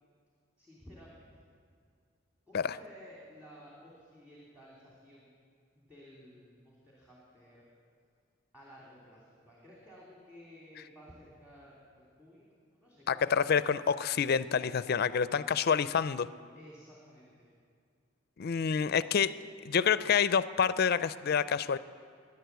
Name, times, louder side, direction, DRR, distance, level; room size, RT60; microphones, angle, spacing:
voice 1, 0.6-1.4 2.5-5.3 5.8-7.6 8.5-13.7 16.5-17.5, equal, 10° right, -5 dB, 2.8 m, -55 dB
voice 2, 13.1-16.3 18.4-19.4 19.6-21.8, left 7 dB, 55° left, 15 dB, 0.4 m, -28 dB
16.5 x 11.0 x 8.0 m, 2.2 s
head